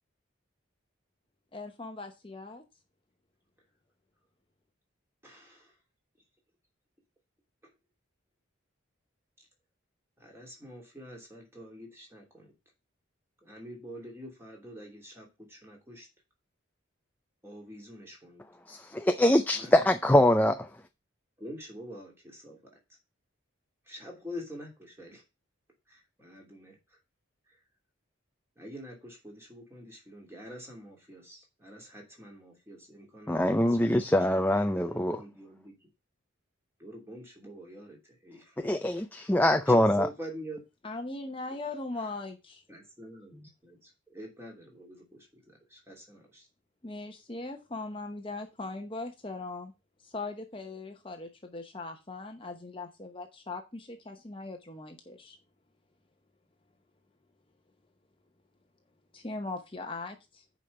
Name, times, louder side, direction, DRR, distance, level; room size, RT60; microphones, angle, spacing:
voice 1, 1.5-2.6 40.8-42.6 43.3-43.5 46.8-49.7 50.0-55.4 59.1-60.4, left 3 dB, 25° left, 0.9 m, -40 dB
voice 2, 5.2-5.8 7.6-7.7 9.4-9.5 10.2-12.5 13.4-16.1 17.4-18.4 19.5-20.1 21.4-22.6 23.8-25.2 25.9-27.0 27.5-27.6 28.6-35.9 36.8-39.3 39.7-40.6 42.7-46.5, equal, 10° right, 2.9 m, -46 dB
voice 3, 18.7-20.7 33.3-35.2 38.6-40.1, left 1 dB, 10° left, 0.4 m, -24 dB
6.9 x 5.2 x 7.0 m
head